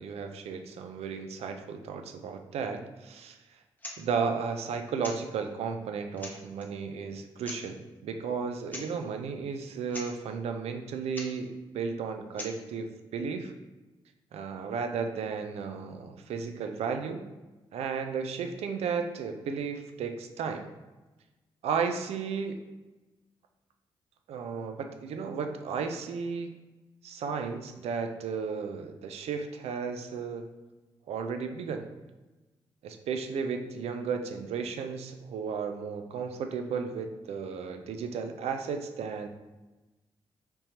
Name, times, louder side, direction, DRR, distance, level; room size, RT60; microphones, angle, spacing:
voice 1, 0.0-3.4 4.0-13.5 14.3-17.2 17.7-20.7 21.6-22.6 24.3-26.5 27.0-30.5 31.1-31.9 32.8-39.3, right 5 dB, 75° right, 6 dB, 0.4 m, -34 dB
sound 1, 3.8-4.0 5.0-5.2 5.8-5.9 6.2-6.7 7.4-7.6 8.7-8.9 9.1-9.2 9.6-9.7 9.9-10.1 11.1-11.3 12.4-12.6, left 2 dB, 15° left, 0.8 m, -41 dB
3.6 x 2.8 x 2.8 m, 1.1 s
supercardioid pair, 45°, 11 cm